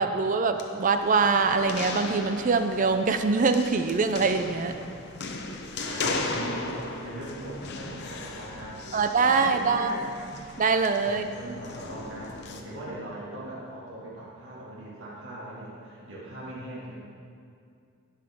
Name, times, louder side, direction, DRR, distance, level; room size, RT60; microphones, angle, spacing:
voice 1, 0.0-4.7 8.9-9.9 10.6-11.5, right 4 dB, 40° right, 7 dB, 0.4 m, -24 dB
sound 1, 0.6-12.6, left 3 dB, 50° left, 0.8 m, -37 dB
voice 2, 5.8-10.7 11.0-16.9, right 1 dB, 55° right, -7 dB, 2.3 m, -40 dB
17.0 x 5.9 x 3.7 m, 2.4 s
head